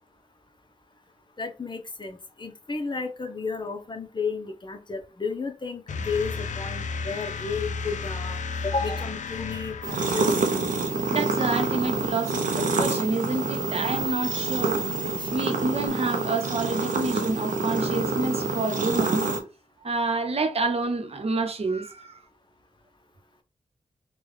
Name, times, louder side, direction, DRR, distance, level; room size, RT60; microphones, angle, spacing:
voice 1, 1.4-10.4 15.2-15.3, left 4 dB, 35° left, 0.7 m, -32 dB
sound 1, 5.9-10.6, left 4 dB, 75° left, 0.4 m, -33 dB
sound 2, 9.8-19.4, right 3 dB, 85° right, 0.6 m, -27 dB
voice 2, 11.1-14.9 15.3-19.4 19.8-22.2, right 3 dB, 50° right, 0.8 m, -28 dB
3.8 x 2.3 x 3.2 m
cardioid pair, 55°, 13 cm